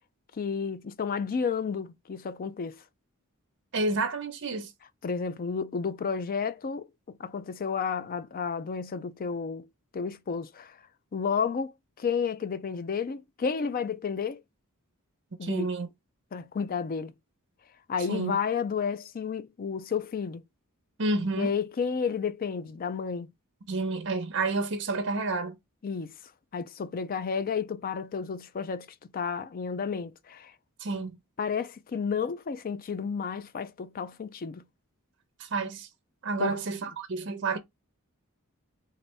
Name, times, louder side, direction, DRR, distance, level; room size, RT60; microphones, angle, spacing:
voice 1, 0.4-2.8 5.0-6.9 7.2-9.7 9.9-10.8 11.1-14.4 15.4-15.7 16.3-17.1 17.9-20.4 21.4-23.3 25.8-26.1 26.5-28.9 29.1-30.5 31.4-34.6 36.4-36.6, left 6 dB, 40° left, 0.4 m, -31 dB
voice 2, 3.7-4.7 15.4-15.9 18.1-18.4 21.0-21.5 23.7-25.6 30.8-31.2 35.4-35.9 36.2-37.6, right 3 dB, 55° right, 0.8 m, -29 dB
4.0 x 2.6 x 3.2 m
head